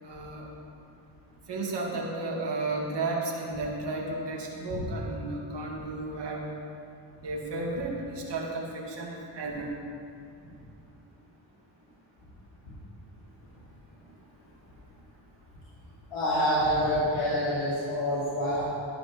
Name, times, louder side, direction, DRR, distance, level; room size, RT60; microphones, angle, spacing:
voice 1, 0.0-0.5 1.5-6.5 7.2-9.7, right 2 dB, 60° right, -1 dB, 2.0 m, -33 dB
voice 2, 16.1-18.6, equal, 90° left, -9 dB, 2.7 m, -27 dB
12.0 x 11.0 x 3.0 m, 2.5 s
cardioid pair, 75°, 48 cm